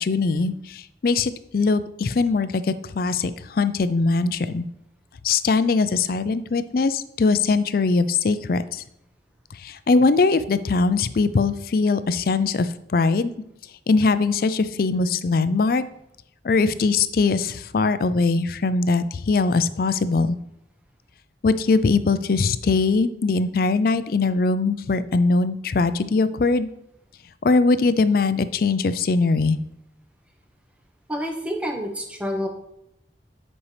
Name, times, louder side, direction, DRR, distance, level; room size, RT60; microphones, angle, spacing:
voice 1, 0.0-4.6 5.2-8.8 9.6-13.3 13.9-15.8 16.4-20.4 21.4-26.7 27.4-29.6, left 4 dB, 55° left, 13 dB, 0.4 m, -21 dB
voice 2, 31.1-32.5, equal, 5° right, 3 dB, 1.0 m, -28 dB
9.7 x 5.4 x 3.3 m, 0.80 s
head